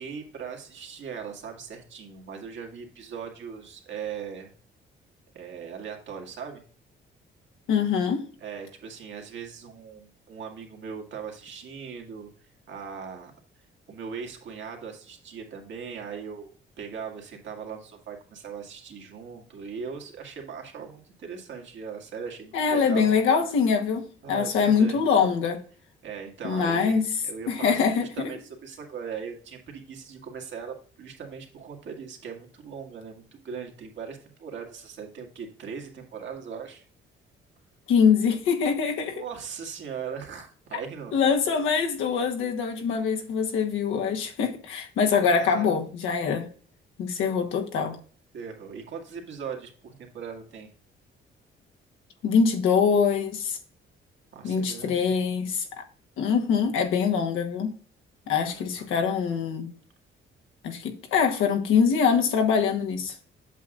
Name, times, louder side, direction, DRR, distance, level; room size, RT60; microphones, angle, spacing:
voice 1, 0.0-4.5 5.3-6.6 8.4-13.3 13.9-16.5 16.8-23.1 24.2-25.0 26.0-27.0 27.2-36.8 39.1-41.4 45.3-45.8 48.3-50.7 54.3-55.1 58.3-58.9, right 6 dB, 70° right, 1.9 m, -39 dB
voice 2, 7.7-8.3 22.5-25.6 26.4-27.0 27.5-28.3 37.9-39.2 41.1-46.5 47.0-48.0 52.2-53.6 54.4-55.7 56.2-57.7 58.3-59.7 60.6-63.1, left 6 dB, 90° left, 1.2 m, -24 dB
8.1 x 6.3 x 2.5 m
cardioid pair, 90°, 20 cm